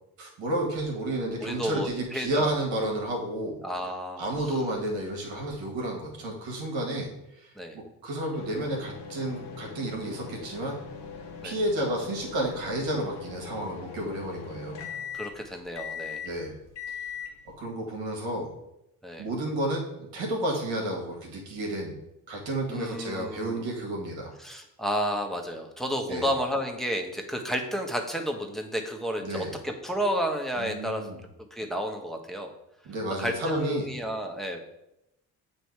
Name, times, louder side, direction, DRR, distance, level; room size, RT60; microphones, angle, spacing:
voice 1, 0.2-3.6 4.2-10.8 11.4-14.8 16.2-16.6 16.9-17.1 17.6-18.5 19.2-22.0 22.3-24.3 26.1-26.3 29.2-29.5 30.6-31.2 32.9-33.9, right 1 dB, 75° right, 0 dB, 1.8 m, -31 dB
voice 2, 1.1-2.5 3.6-4.6 7.6-7.8 11.4-11.6 15.1-16.2 19.0-19.3 22.7-23.7 24.4-31.1 31.5-32.5 33.2-34.6, equal, ahead, 2 dB, 1.3 m, -31 dB
sound 1, 8.3-17.5, left 6 dB, 65° left, 1.1 m, -41 dB
8.0 x 3.1 x 4.6 m, 0.85 s
hypercardioid pair, 45°, 45 cm